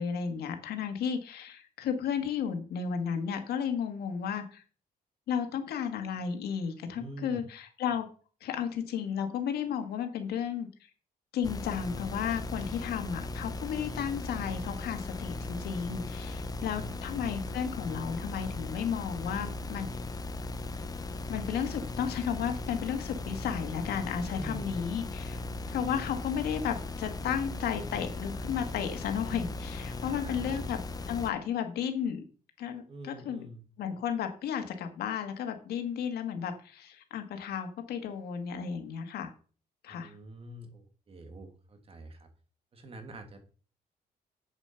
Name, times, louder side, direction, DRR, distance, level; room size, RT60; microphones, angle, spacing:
voice 1, 0.0-4.6 5.3-8.1 8.4-10.7 11.3-19.9 21.3-25.4 25.7-30.8 31.1-32.2 32.6-33.5 33.8-39.3 39.8-40.1, left 7 dB, 85° left, 6 dB, 1.8 m, -33 dB
voice 2, 6.9-7.4 16.6-17.1 24.3-24.9 29.9-30.6 32.9-33.7 39.9-42.3 42.7-43.4, right 1 dB, 35° right, 6 dB, 2.1 m, -46 dB
sound 1, 11.4-31.3, left 2 dB, 25° left, 0.7 m, -38 dB
8.3 x 7.1 x 5.9 m, 0.40 s
cardioid pair, 140°, 16 cm